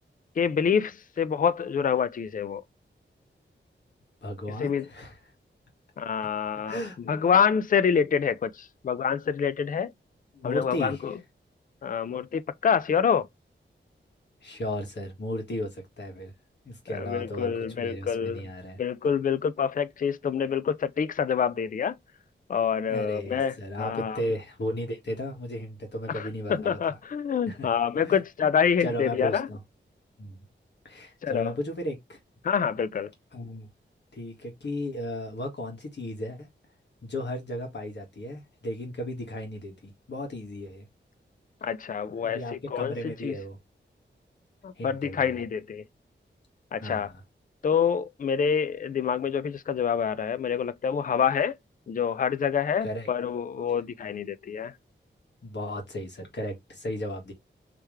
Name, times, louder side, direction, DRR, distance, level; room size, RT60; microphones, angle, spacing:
voice 1, 0.4-2.6 4.6-4.9 6.0-6.8 7.0-9.9 10.4-11.1 11.8-13.3 16.9-18.5 18.8-22.0 22.5-24.2 26.1-29.5 31.2-31.5 32.4-33.1 41.6-43.4 44.6-45.8 46.7-47.1 47.6-51.6 51.9-54.7, left 7 dB, 45° left, 0.4 m, -27 dB
voice 2, 4.2-5.2 6.7-7.0 10.3-11.0 14.4-16.3 16.6-17.5 17.8-18.8 22.9-27.0 27.5-27.7 28.0-28.2 28.8-29.6 30.2-30.4 30.9-32.2 33.3-33.7 34.1-36.5 37.0-40.9 42.2-43.6 44.8-45.4 46.8-47.2 52.8-53.1 55.4-57.3, left 1 dB, 65° left, 1.8 m, -35 dB
3.4 x 3.3 x 3.1 m
wide cardioid pair, 90°, 20 cm